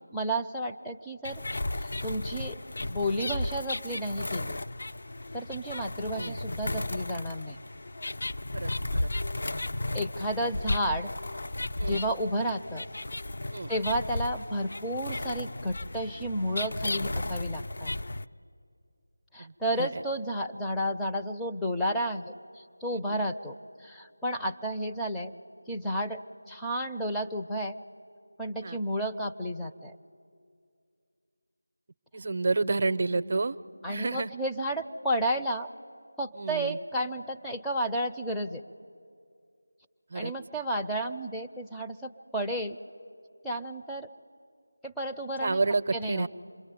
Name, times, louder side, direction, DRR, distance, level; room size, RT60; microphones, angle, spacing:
voice 1, 0.1-1.4 1.8-2.6 2.8-4.6 5.3-7.6 9.9-11.1 11.8-12.8 13.7-17.9 19.3-25.3 25.7-26.2 26.5-27.8 28.4-29.9 33.8-35.7 36.2-38.6 40.1-42.8 43.4-44.1 44.8-45.6 45.9-46.3, equal, 5° left, -2 dB, 0.6 m, -32 dB
sound 1, 1.2-18.2, left 2 dB, 50° left, 0.6 m, -34 dB
voice 2, 22.9-23.2 28.6-28.8 32.1-33.6 33.9-34.3 36.3-36.8 40.1-40.3 45.4-46.3, right 3 dB, 40° right, 14 dB, 0.6 m, -29 dB
27.0 x 22.0 x 9.4 m, 2.3 s
figure-of-eight pair, 165°, 0 cm